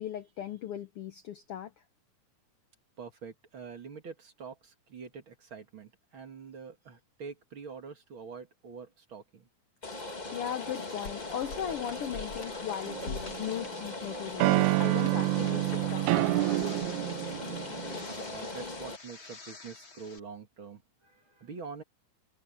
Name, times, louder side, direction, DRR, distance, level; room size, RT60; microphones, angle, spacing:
voice 1, 0.0-1.7 10.3-16.7, left 10 dB, 85° left, 1.2 m, -38 dB
voice 2, 3.0-9.5 18.1-21.8, right 5 dB, 45° right, 2.5 m, -45 dB
Rain, 9.8-19.0, left 2 dB, 20° left, 1.1 m, -39 dB
sound 1, 10.8-20.2, left 3 dB, 35° left, 4.4 m, -47 dB
sound 2, 12.9-13.7 14.4-18.0, right 21 dB, 80° right, 1.8 m, -28 dB
omnidirectional pair, 3.7 m